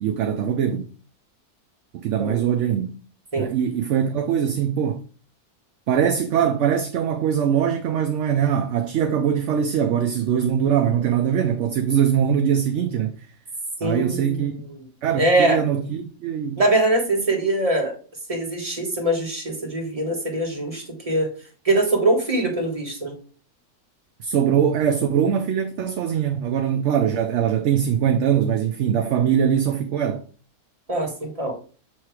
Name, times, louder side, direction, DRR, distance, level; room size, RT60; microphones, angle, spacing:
voice 1, 0.0-0.9 1.9-2.9 3.4-5.0 5.9-13.2 13.8-14.5 15.0-16.6 24.2-30.2, right 8 dB, 65° right, 0.8 m, -22 dB
voice 2, 13.8-14.6 15.2-15.6 16.6-17.9 18.3-21.3 21.6-23.2 30.9-31.5, right 2 dB, 25° right, 1.7 m, -22 dB
7.3 x 3.1 x 4.7 m
omnidirectional pair, 1.6 m